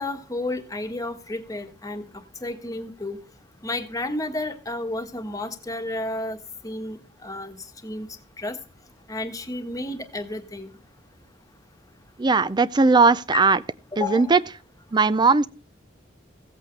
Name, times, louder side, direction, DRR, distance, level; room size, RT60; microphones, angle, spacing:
voice 1, 0.0-2.1 2.4-3.2 3.6-6.4 6.6-7.5 7.8-8.6 9.1-10.7 13.3-13.4 13.9-14.3, left 2 dB, 20° left, 1.4 m, -31 dB
voice 2, 12.2-13.6 14.0-14.4 14.9-15.5, right 4 dB, 25° right, 0.4 m, -18 dB
16.0 x 8.3 x 3.2 m
head